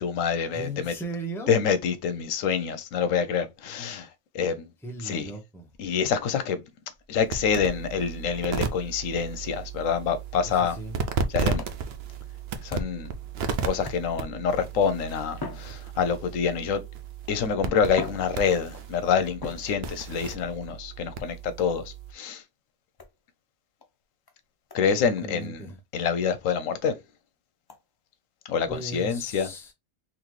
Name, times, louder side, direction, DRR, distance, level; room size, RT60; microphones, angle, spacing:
voice 1, 0.0-0.9 1.5-4.1 4.3-4.6 5.0-5.3 5.8-6.6 7.1-10.8 11.3-11.6 12.6-13.1 13.7-16.8 17.3-21.8 22.1-22.4 24.7-25.6 25.9-26.9 28.5-29.5, left 6 dB, 80° left, 1.0 m, -26 dB
voice 2, 0.5-1.6 4.8-5.7 10.4-11.0 24.9-25.8 28.7-29.7, right 2 dB, ahead, 0.7 m, -37 dB
sound 1, 7.2-22.1, right 5 dB, 60° right, 0.8 m, -34 dB
sound 2, 11.5-13.2 13.8-14.4 15.3-16.4 17.3-17.4 17.9-18.9 19.4-20.1 21.6-21.9 23.0-23.2 23.8-23.9 24.3-24.4 24.7-24.9 25.2-25.3 25.7-25.8 26.2-26.3 26.7-26.8 27.7-27.8, left 3 dB, 35° left, 0.4 m, -41 dB
3.9 x 2.9 x 3.0 m
omnidirectional pair, 1.3 m